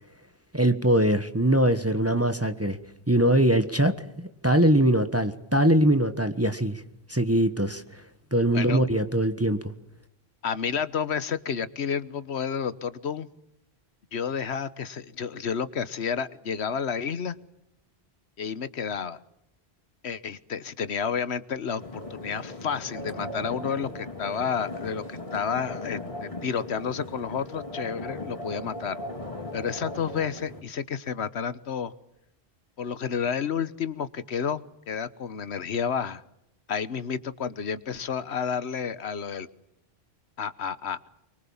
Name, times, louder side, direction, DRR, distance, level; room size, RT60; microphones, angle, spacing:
voice 1, 0.5-2.8 3.1-6.8 7.1-8.0 8.3-9.7, right 1 dB, 15° right, 9 dB, 1.2 m, -22 dB
voice 2, 10.4-13.3 14.1-17.4 18.4-19.2 20.0-29.0 29.5-31.9 32.8-36.2 36.7-39.5 40.4-41.0, left 6 dB, 80° left, 15 dB, 1.4 m, -30 dB
sound 1, 21.8-30.6, left 1 dB, 30° left, 4.4 m, -38 dB
24.5 x 23.0 x 7.2 m, 0.83 s
omnidirectional pair, 1.1 m